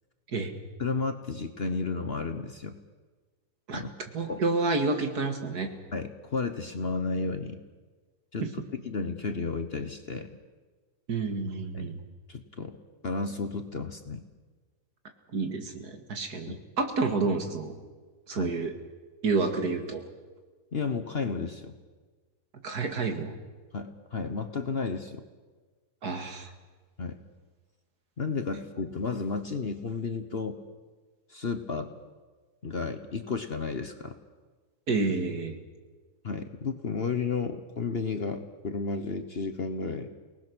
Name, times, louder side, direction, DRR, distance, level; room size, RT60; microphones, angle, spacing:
voice 1, 0.8-2.8 3.7-3.9 4.3-4.4 5.9-7.6 8.3-10.3 11.7-11.9 12.3-12.8 13.0-14.2 16.5-16.6 18.3-18.6 20.7-21.8 23.7-25.2 27.0-27.2 28.2-30.6 31.3-31.9 32.6-34.1 36.2-40.1, left 4 dB, 40° left, 7 dB, 1.1 m, -32 dB
voice 2, 4.1-5.7 8.4-8.5 11.1-12.0 15.3-17.7 18.3-18.7 19.2-20.0 22.6-23.3 26.0-26.5 34.9-35.6, right 3 dB, 65° right, 5 dB, 2.5 m, -29 dB
29.5 x 19.0 x 6.2 m, 1.4 s
omnidirectional pair, 1.8 m